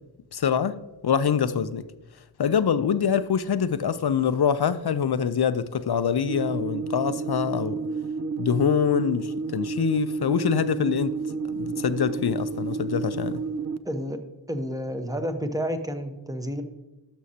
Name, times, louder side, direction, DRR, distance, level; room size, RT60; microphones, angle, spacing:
voice 1, 0.3-1.8 2.4-7.8 8.4-11.1 11.6-13.4, left 7 dB, 60° left, 0.5 m, -25 dB
sound 1, 6.3-13.8, right 4 dB, 40° right, 0.4 m, -31 dB
voice 2, 13.8-14.2 14.5-16.6, equal, 10° right, 0.8 m, -30 dB
12.5 x 6.2 x 2.8 m
wide cardioid pair, 50°, 45 cm